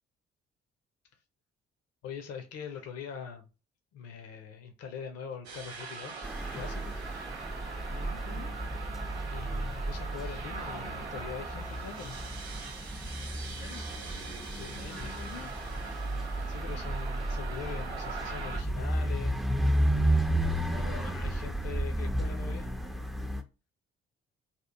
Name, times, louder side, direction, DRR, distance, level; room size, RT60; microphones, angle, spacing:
voice 1, 2.0-3.5 3.9-7.0 9.3-12.2 14.5-15.1 16.5-19.4 20.7-22.7, left 7 dB, 50° left, 0.8 m, -42 dB
sound 1, 5.4-18.6, right 5 dB, 85° right, 0.5 m, -42 dB
sound 2, 6.2-23.4, right 1 dB, ahead, 0.4 m, -33 dB
voice 2, 7.9-8.6 13.5-13.9 14.7-15.5 20.6-21.2, left 3 dB, 85° left, 0.6 m, -46 dB
2.9 x 2.4 x 3.4 m
figure-of-eight pair, 40°, 31 cm